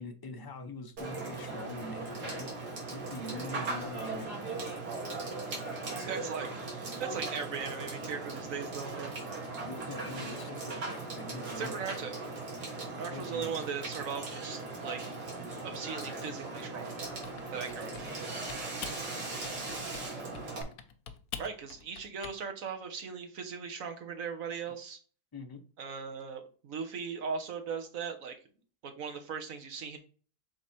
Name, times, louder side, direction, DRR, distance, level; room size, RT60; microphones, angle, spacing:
voice 1, 0.0-2.5 2.9-4.3 9.6-12.0 12.9-13.6 17.7-17.8 25.3-25.6, left 2 dB, 30° left, 5 dB, 0.4 m, -44 dB
Water / Water tap faucet / Sink (filling or washing), 1.0-20.6, right 3 dB, 85° right, 2.6 m, -39 dB
voice 2, 6.1-9.1 11.5-12.2 13.0-15.0 15.6-16.9 17.5-18.0 21.4-25.0 25.8-28.3 28.8-30.0, right 6 dB, 60° right, 5 dB, 1.4 m, -38 dB
Typing, 17.0-18.2 18.5-19.0 19.4-20.1 20.3-22.4, left 8 dB, 70° left, 1.1 m, -45 dB
6.3 x 3.9 x 4.3 m, 0.40 s
omnidirectional pair, 1.7 m